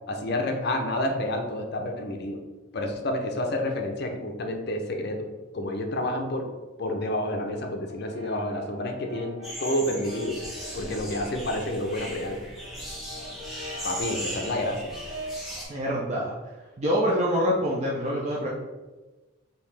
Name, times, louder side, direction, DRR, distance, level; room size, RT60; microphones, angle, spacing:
voice 1, 0.1-2.4 2.7-5.3 5.5-6.5 6.8-10.4 10.7-12.4 13.8-14.9, left 1 dB, 50° left, 4 dB, 0.5 m, -29 dB
Brass instrument, 7.9-11.5 11.9-15.5, equal, 65° right, 1.2 m, -42 dB
sound 1, 9.4-15.6, equal, ahead, 1.0 m, -38 dB
voice 2, 15.7-16.3 16.8-18.5, equal, 30° right, -5 dB, 0.5 m, -25 dB
5.2 x 2.8 x 3.3 m, 1.2 s
head